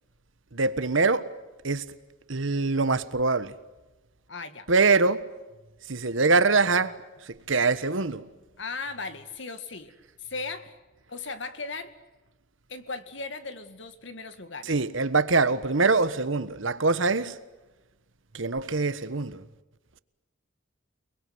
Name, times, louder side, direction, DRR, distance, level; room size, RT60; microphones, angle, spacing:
voice 1, 0.5-1.3 1.6-1.8 2.3-3.5 4.7-5.3 5.9-7.0 7.2-8.3 14.6-17.4 18.3-19.4, right 3 dB, 70° right, 1.4 m, -24 dB
voice 2, 4.3-4.7 8.6-9.9 10.2-10.7 11.1-11.9 12.7-14.7, left 3 dB, 60° left, 2.2 m, -37 dB
29.5 x 21.0 x 9.4 m
head